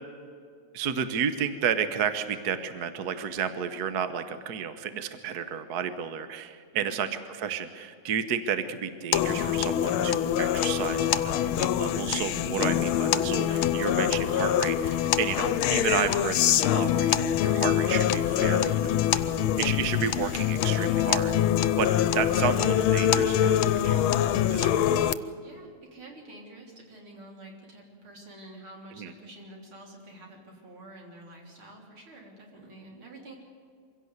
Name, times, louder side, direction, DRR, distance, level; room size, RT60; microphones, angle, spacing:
voice 1, 0.7-19.2 19.6-21.3 21.8-25.2 29.0-29.1, right 7 dB, 55° right, 10 dB, 1.4 m, -32 dB
voice 2, 6.7-7.1 25.4-33.3, right 1 dB, 80° right, 0 dB, 4.6 m, -48 dB
sound 1, 9.1-25.1, left 10 dB, 80° left, 1.5 m, -24 dB
24.0 x 16.5 x 8.0 m, 2.2 s
omnidirectional pair, 2.3 m